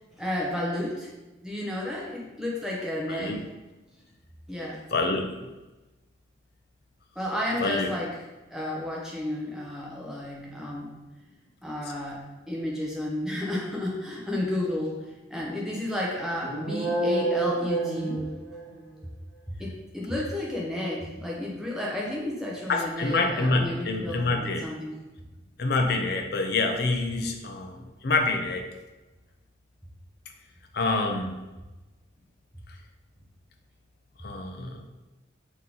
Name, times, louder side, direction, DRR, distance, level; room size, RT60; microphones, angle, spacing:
voice 1, 0.2-1.1 1.4-3.5 4.5-4.8 7.2-8.1 8.5-10.9 11.6-12.2 12.5-15.0 15.3-18.2 19.6-25.0, left 1 dB, 5° right, -4 dB, 0.8 m, -32 dB
voice 2, 3.1-3.4 4.9-5.5 7.6-7.9 22.7-24.7 25.6-28.6 30.7-31.4 34.2-34.8, left 3 dB, 55° left, 4 dB, 0.5 m, -27 dB
sound 1, 16.4-18.9, right 2 dB, 50° right, 1.0 m, -28 dB
3.7 x 3.0 x 4.0 m, 1.1 s
head